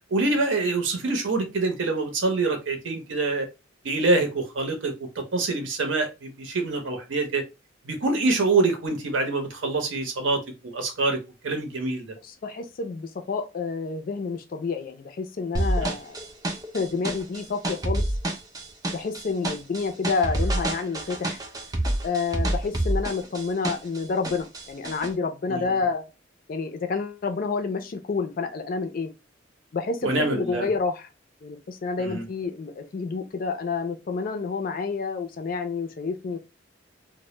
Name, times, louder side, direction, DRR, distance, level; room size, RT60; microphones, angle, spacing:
voice 1, 0.1-3.5 3.8-4.9 5.3-7.4 7.8-12.1 15.8-15.9 25.5-25.7 30.0-30.7 32.0-32.2, right 3 dB, 75° right, 0.7 m, -25 dB
voice 2, 12.2-16.2 16.7-18.1 18.9-21.4 22.0-26.1 26.5-29.1 29.7-31.1 31.4-36.4, left 4 dB, 45° left, 0.4 m, -29 dB
sound 1, 15.5-24.0 24.2-25.1, right 1 dB, 20° right, 0.4 m, -27 dB
2.1 x 2.0 x 3.0 m
head